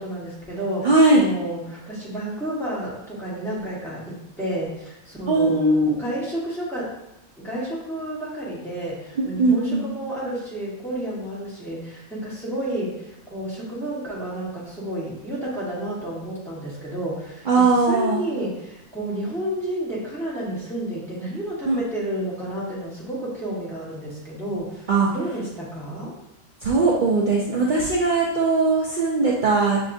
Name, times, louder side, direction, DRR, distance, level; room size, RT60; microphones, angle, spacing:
voice 1, 0.0-6.9 7.4-26.1, right 1 dB, ahead, -8 dB, 1.3 m, -31 dB
voice 2, 0.8-1.2 5.3-6.0 9.4-9.8 17.5-18.2 21.7-21.8 24.9-25.1 26.6-29.8, right 3 dB, 65° right, -4 dB, 0.4 m, -19 dB
6.4 x 2.8 x 2.6 m, 0.90 s
omnidirectional pair, 1.5 m